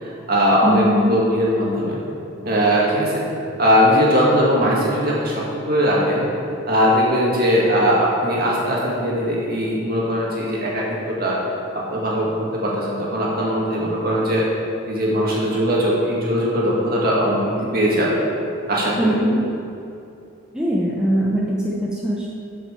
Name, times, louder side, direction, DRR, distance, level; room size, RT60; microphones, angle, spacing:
voice 1, 0.0-2.0 2.4-3.2 3.6-6.3 6.7-11.4 11.7-14.5 14.9-18.2 18.7-19.2, equal, 45° right, -4 dB, 2.0 m, -20 dB
voice 2, 0.6-1.1 19.0-19.4 20.5-22.3, equal, 5° right, -5 dB, 0.8 m, -21 dB
8.1 x 6.0 x 7.0 m, 2.7 s
head